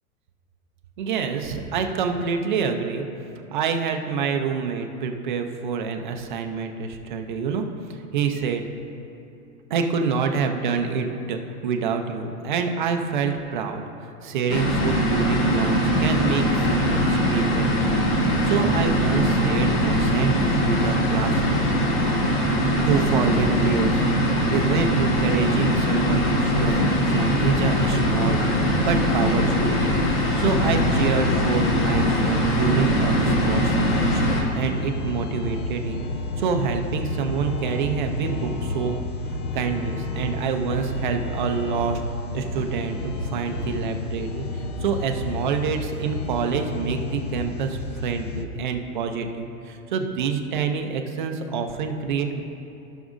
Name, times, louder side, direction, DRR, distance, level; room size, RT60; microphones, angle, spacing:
voice 1, 1.0-3.1 3.5-8.6 9.7-21.6 22.8-28.4 28.7-34.2 34.5-36.1 36.4-39.0 39.5-42.0 42.3-52.4, right 6 dB, 35° right, 5 dB, 0.4 m, -27 dB
sound 1, 14.5-34.4, equal, 40° left, 1.2 m, -21 dB
sound 2, 30.4-48.5, left 2 dB, 80° left, 0.9 m, -31 dB
16.0 x 6.1 x 2.5 m, 2.8 s
supercardioid pair, 170°, 43 cm